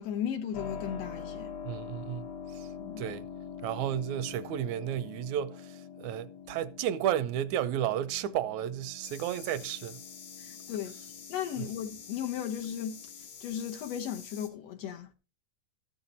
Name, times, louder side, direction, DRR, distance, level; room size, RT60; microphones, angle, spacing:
voice 1, 0.0-1.5 2.8-3.0 10.4-11.0 11.3-13.0 13.4-15.1, left 9 dB, 70° left, 1.8 m, -36 dB
Keyboard (musical), 0.5-13.3, left 7 dB, 50° left, 1.3 m, -45 dB
voice 2, 1.6-2.3 2.5-2.7 3.0-3.3 3.6-10.0 11.6-11.7, right 11 dB, 80° right, 1.9 m, -32 dB
sound 1, 9.0-14.5, left 7 dB, 90° left, 3.0 m, -48 dB
13.5 x 7.0 x 4.1 m
omnidirectional pair, 3.3 m